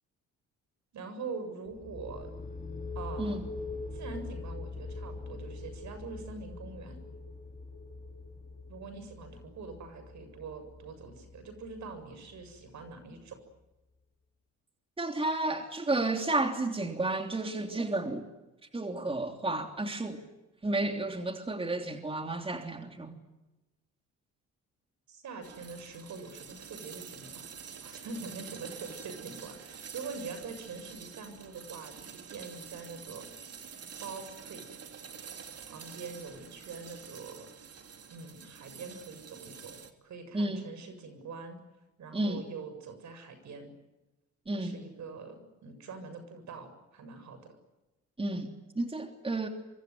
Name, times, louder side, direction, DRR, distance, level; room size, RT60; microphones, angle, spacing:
voice 1, 0.9-2.3 3.0-3.4 3.9-7.0 8.7-13.4 25.1-27.5 27.8-33.3 34.0-34.8 35.7-37.5 38.1-41.6 42.0-43.7 44.5-47.6, right 4 dB, 70° right, 9 dB, 7.2 m, -44 dB
sound 1, 1.7-13.2, left 3 dB, 25° left, 3.5 m, -43 dB
voice 2, 15.0-18.2 18.7-20.2 20.6-23.2 40.3-40.7 42.1-42.4 44.5-44.8 48.2-49.5, right 2 dB, 20° right, 5 dB, 3.2 m, -32 dB
sound 2, 25.4-39.9, right 7 dB, 55° right, 3.3 m, -47 dB
25.5 x 24.5 x 9.5 m, 1.0 s
cardioid pair, 90°, 30 cm